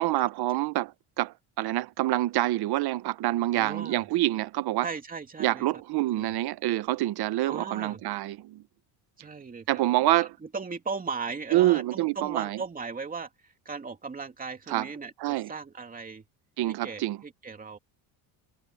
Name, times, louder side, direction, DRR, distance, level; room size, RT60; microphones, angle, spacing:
voice 1, 0.0-4.9 5.4-8.6 9.7-10.3 11.5-12.6 14.7-14.9 15.2-15.5 16.6-17.2, right 16 dB, 60° right, 1.1 m, -26 dB
voice 2, 3.5-4.1 4.8-5.7 6.1-6.4 7.5-8.0 9.2-9.8 10.2-13.3 13.6-16.2 16.7-17.8, right 4 dB, 20° right, 2.6 m, -37 dB
cardioid pair, 145°, 43 cm